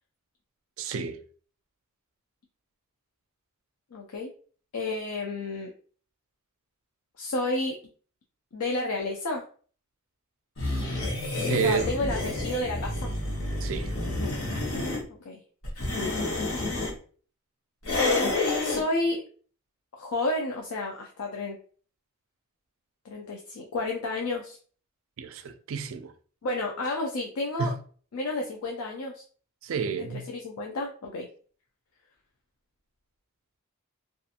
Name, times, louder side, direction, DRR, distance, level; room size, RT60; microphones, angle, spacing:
voice 1, 0.8-1.2 11.5-11.9 13.6-14.0 25.2-26.1 27.6-27.8 29.6-30.3, right 6 dB, 65° right, 0.3 m, -30 dB
voice 2, 3.9-4.3 4.7-5.7 7.2-7.8 8.5-9.4 11.6-13.1 15.1-15.4 18.6-19.2 20.0-21.6 23.1-24.6 26.4-27.7 28.1-29.2 30.0-31.3, left 2 dB, 85° left, 0.4 m, -31 dB
sound 1, 10.6-15.0 15.6-16.9 17.8-18.8, left 2 dB, 65° left, 0.9 m, -29 dB
2.7 x 2.4 x 2.4 m
head